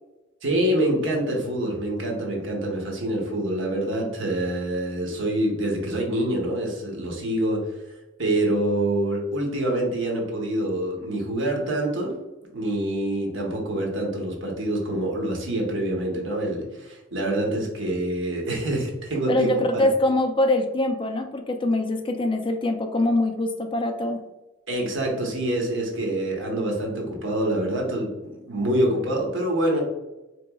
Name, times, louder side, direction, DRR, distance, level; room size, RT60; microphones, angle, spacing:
voice 1, 0.4-7.7 8.2-12.1 12.5-19.9 24.7-29.8, right 1 dB, 70° right, 0 dB, 0.9 m, -26 dB
voice 2, 19.3-24.2, left 1 dB, 25° left, 5 dB, 0.3 m, -23 dB
4.1 x 3.0 x 2.2 m, 1.0 s
head